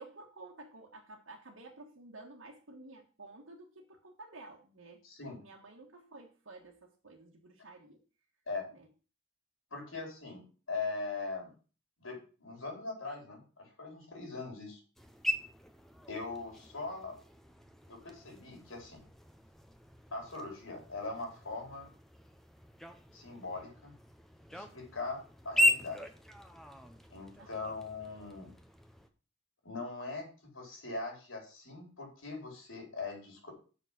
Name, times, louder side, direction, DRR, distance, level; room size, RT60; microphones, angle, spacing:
voice 1, 0.0-5.0 5.4-8.0 8.7-8.9 27.4-27.7, right 2 dB, 85° right, -2 dB, 1.5 m, -52 dB
voice 2, 5.0-5.4 8.5-8.7 9.7-11.5 12.0-14.8 16.1-17.2 17.9-19.0 20.1-21.9 23.1-23.9 24.5-26.0 27.1-28.5 29.6-33.5, left 3 dB, 85° left, 1 dB, 4.4 m, -41 dB
sound 1, 15.0-29.1, equal, ahead, 0.8 m, -38 dB
6.7 x 6.1 x 7.3 m, 0.37 s
head